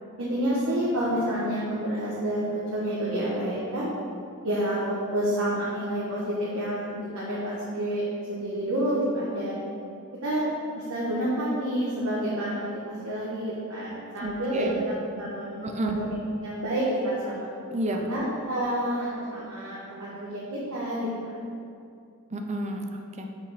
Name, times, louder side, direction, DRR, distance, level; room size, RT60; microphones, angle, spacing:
voice 1, 0.2-3.9 4.4-9.6 10.2-10.4 10.7-14.7 15.1-16.1 16.4-17.5 18.1-21.4, right 1 dB, 70° right, -8 dB, 1.1 m, -29 dB
voice 2, 14.2-14.8 15.6-16.0 17.7-18.2 22.3-23.3, right 1 dB, 30° right, 3 dB, 0.5 m, -31 dB
5.2 x 5.1 x 4.0 m, 2.4 s
head